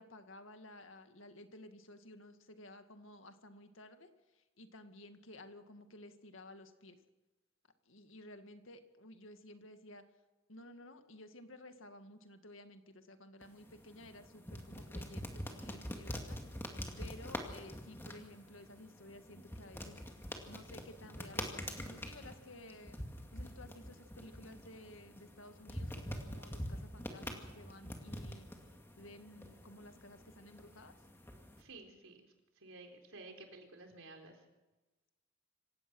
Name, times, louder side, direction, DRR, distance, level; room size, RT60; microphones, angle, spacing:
voice 1, 0.0-4.1 4.3-7.0 7.9-10.0 10.5-16.4 17.0-20.0 20.5-23.1 23.3-28.5 29.0-30.9, left 1 dB, 70° left, 7 dB, 2.0 m, -54 dB
sound 1, 13.4-31.6, equal, 10° left, 2.3 m, -46 dB
voice 2, 31.6-34.5, right 2 dB, 75° right, 4 dB, 4.1 m, -53 dB
26.5 x 16.5 x 6.3 m, 1.1 s
head